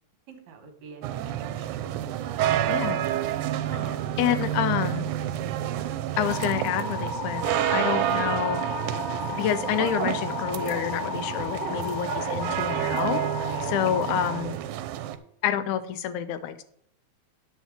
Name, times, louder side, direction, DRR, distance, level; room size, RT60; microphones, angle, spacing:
voice 1, 0.3-2.0 3.6-4.1 7.7-7.8 13.4-13.9, right 5 dB, 65° right, 5 dB, 2.5 m, -43 dB
sound 1, 1.0-15.2, right 12 dB, 85° right, 2.0 m, -29 dB
voice 2, 2.7-3.0 4.2-5.1 6.2-7.4 7.7-8.6 9.3-13.2 13.7-14.6 15.4-16.6, left 10 dB, 85° left, 13 dB, 2.1 m, -28 dB
sound 2, 6.3-14.4, left 5 dB, 50° left, 2.1 m, -34 dB
9.5 x 4.5 x 7.3 m, 0.71 s
omnidirectional pair, 3.4 m